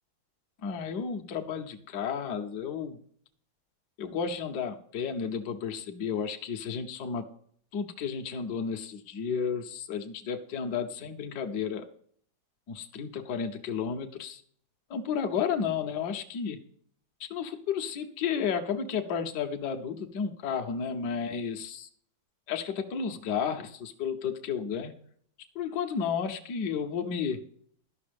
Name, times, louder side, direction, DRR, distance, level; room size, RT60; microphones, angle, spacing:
voice 1, 0.6-3.0 4.0-7.2 7.7-11.8 12.7-14.4 14.9-16.6 17.3-21.9 22.5-24.9 25.5-27.4, left 6 dB, 60° left, 5 dB, 1.4 m, -32 dB
11.5 x 6.1 x 5.1 m, 0.62 s
omnidirectional pair, 2.2 m